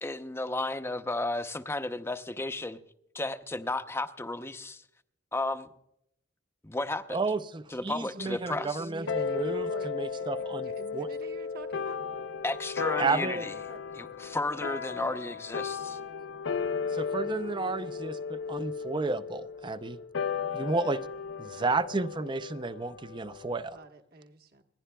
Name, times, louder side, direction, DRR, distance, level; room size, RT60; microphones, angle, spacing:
voice 1, 0.0-2.8 3.1-4.8 5.3-5.7 6.6-7.2 7.7-8.8 12.4-13.5 14.0-16.0, left 2 dB, 15° left, 10 dB, 0.6 m, -33 dB
voice 2, 7.1-11.1 13.0-13.5 16.9-20.0 20.5-21.0 21.4-23.8, right 3 dB, 25° right, 14 dB, 0.5 m, -32 dB
voice 3, 8.1-9.9 10.6-12.0 13.5-13.8 23.7-24.6, right 2 dB, 55° right, 5 dB, 1.3 m, -46 dB
sound 1, 9.1-23.8, left 5 dB, 90° left, 0.6 m, -35 dB
29.0 x 11.0 x 2.3 m, 0.74 s
head